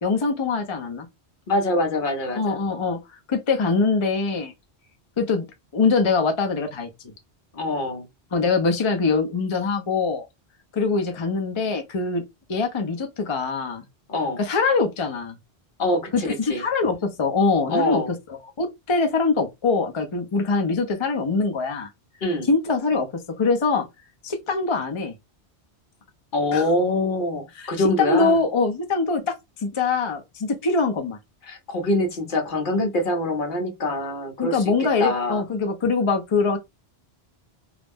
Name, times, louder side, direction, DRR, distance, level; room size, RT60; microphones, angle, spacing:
voice 1, 0.0-1.1 2.3-3.0 3.3-4.5 5.2-5.4 5.7-6.9 8.3-10.3 10.7-12.2 12.5-13.8 14.4-15.4 16.1-18.0 18.6-21.9 22.5-23.1 23.4-23.9 24.2-25.1 26.5-26.6 27.6-27.7 28.0-29.4 29.6-31.2 34.4-36.6, left 4 dB, 40° left, 0.5 m, -23 dB
voice 2, 1.5-2.6 7.5-8.1 14.1-14.4 15.8-16.6 17.7-18.1 22.2-22.5 26.3-28.4 31.4-35.4, left 2 dB, 55° left, 0.8 m, -24 dB
2.4 x 2.0 x 3.3 m
omnidirectional pair, 1.1 m